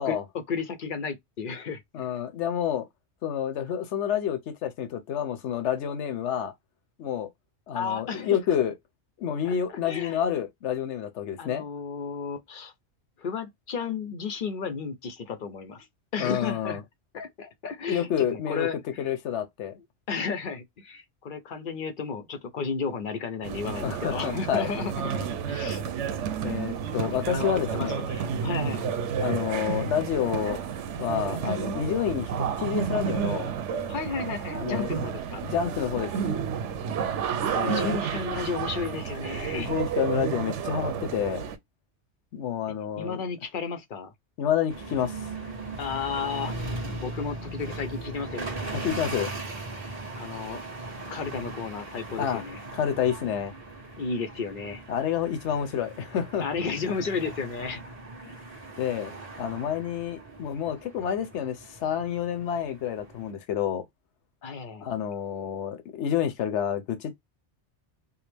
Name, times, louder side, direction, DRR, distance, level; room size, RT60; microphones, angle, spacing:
voice 1, 0.0-2.1 7.7-8.4 9.4-9.5 9.9-10.2 11.4-12.7 13.2-15.9 16.1-16.8 17.1-19.1 20.1-25.8 27.3-28.9 33.9-35.4 37.6-39.7 43.0-44.1 45.8-46.5 46.9-48.5 50.1-50.6 51.1-52.6 54.0-54.8 56.4-57.8 58.2-58.4 64.4-64.9, left 5 dB, 55° left, 0.7 m, -33 dB
voice 2, 1.9-2.9 3.2-6.5 7.0-7.3 7.7-8.7 9.2-11.6 16.2-16.8 17.9-18.7 19.0-19.7 23.8-24.7 26.4-28.1 29.2-30.6 31.0-33.5 34.5-34.9 35.4-36.1 37.5-37.9 39.5-41.4 42.3-43.2 44.4-45.3 46.9-47.1 48.7-49.3 52.2-52.4 52.7-53.5 54.9-56.5 58.8-59.1 59.4-63.8 64.8-67.1, left 9 dB, 80° left, 1.0 m, -29 dB
sound 1, 23.4-41.6, right 7 dB, 85° right, 1.0 m, -31 dB
sound 2, 44.7-63.3, right 2 dB, 35° right, 1.2 m, -39 dB
4.7 x 2.1 x 3.3 m
omnidirectional pair, 1.2 m